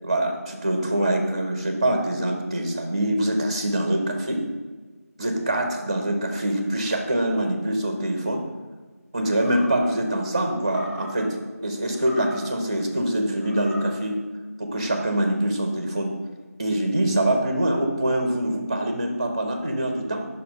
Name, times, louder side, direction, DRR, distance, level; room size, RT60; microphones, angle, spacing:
voice 1, 0.0-4.4 5.2-8.4 9.1-14.2 14.6-16.1 16.6-20.3, right 1 dB, 25° right, 5 dB, 0.5 m, -24 dB
Animal, 9.2-10.0 10.6-11.3 11.9-12.7 13.3-14.0, equal, 45° left, 1.4 m, -39 dB
5.4 x 4.2 x 5.0 m, 1.3 s
figure-of-eight pair, 170°, 9 cm